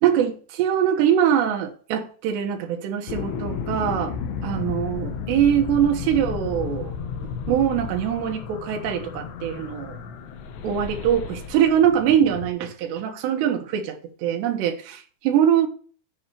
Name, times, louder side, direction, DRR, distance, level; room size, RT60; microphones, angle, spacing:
voice 1, 0.0-4.1 4.4-6.9 7.5-10.0 10.6-15.7, right 9 dB, 75° right, 3.3 m, -22 dB
sound 1, 3.1-12.5, left 6 dB, 75° left, 3.3 m, -33 dB
10.5 x 5.1 x 6.7 m
omnidirectional pair, 5.1 m